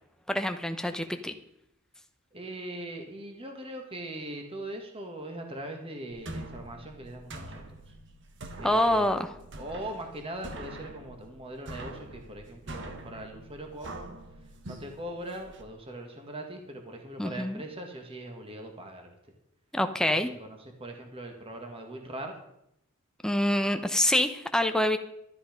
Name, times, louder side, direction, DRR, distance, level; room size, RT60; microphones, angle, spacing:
voice 1, 0.3-1.3 8.6-9.3 17.2-17.6 19.7-20.3 23.2-25.0, left 1 dB, 5° left, 7 dB, 0.9 m, -26 dB
voice 2, 2.3-7.5 7.9-8.0 8.6-9.2 9.6-14.2 14.6-19.1 20.4-22.4, right 1 dB, 25° right, 3 dB, 1.9 m, -40 dB
sound 1, 6.1-15.6, right 1 dB, 60° right, 1.5 m, -44 dB
13.0 x 11.5 x 5.2 m, 0.78 s
head